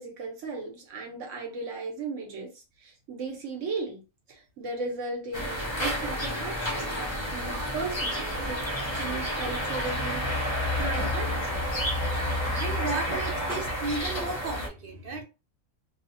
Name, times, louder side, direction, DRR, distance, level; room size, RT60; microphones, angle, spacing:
voice 1, 0.0-4.0 4.3-11.7 13.3-13.5, right 3 dB, 65° right, 1.0 m, -37 dB
sound 1, 5.3-14.7, left 1 dB, 35° left, 0.5 m, -30 dB
voice 2, 12.5-15.2, right 3 dB, 80° right, 0.5 m, -34 dB
2.8 x 2.0 x 2.6 m
omnidirectional pair, 1.5 m